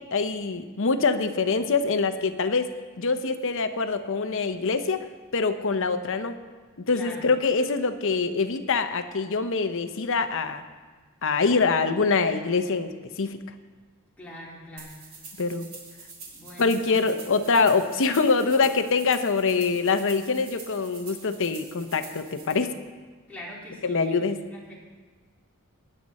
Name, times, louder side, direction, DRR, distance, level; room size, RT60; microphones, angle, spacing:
voice 1, 0.1-5.0 5.3-6.4 6.8-10.6 11.2-12.9 13.2-13.4 15.4-15.7 16.6-22.7 23.8-24.4, left 4 dB, 60° left, 9 dB, 0.8 m, -24 dB
voice 2, 6.9-7.3 14.2-14.9 16.3-17.0 23.3-24.7, left 1 dB, 5° left, -7 dB, 3.2 m, -43 dB
sound 1, 14.8-22.5, right 4 dB, 65° right, 3.3 m, -45 dB
16.0 x 10.0 x 4.2 m, 1.4 s
head